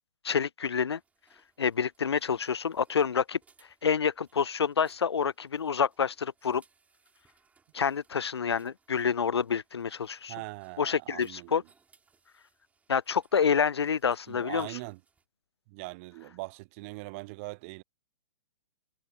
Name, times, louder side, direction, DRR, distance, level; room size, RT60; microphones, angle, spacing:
voice 1, 0.2-1.0 1.6-3.4 3.8-6.6 7.7-10.3 10.8-11.6 12.9-14.7, left 6 dB, 70° left, 0.5 m, -28 dB
sound 1, 0.9-15.2, right 5 dB, 10° right, 7.4 m, -67 dB
voice 2, 10.3-11.6 13.3-13.4 14.3-15.0 15.7-17.8, right 26 dB, 30° right, 0.5 m, -41 dB
figure-of-eight pair, 115°, 14 cm